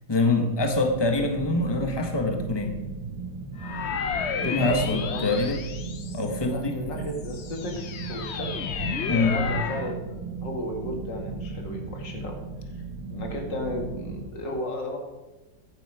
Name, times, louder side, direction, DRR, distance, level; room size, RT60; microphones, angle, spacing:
voice 1, 0.1-2.8 4.4-5.6 6.1-6.8 9.1-9.4, left 2 dB, 15° left, 4 dB, 1.4 m, -25 dB
sound 1, 0.6-14.3, right 4 dB, 70° right, 1.8 m, -37 dB
sound 2, 3.6-6.5 7.1-9.9, left 6 dB, 50° left, 0.9 m, -32 dB
voice 2, 4.5-5.4 6.4-8.7 9.2-12.4 13.1-15.0, left 1 dB, 85° left, 2 dB, 2.7 m, -34 dB
14.0 x 10.5 x 5.0 m, 1.1 s
omnidirectional pair, 1.9 m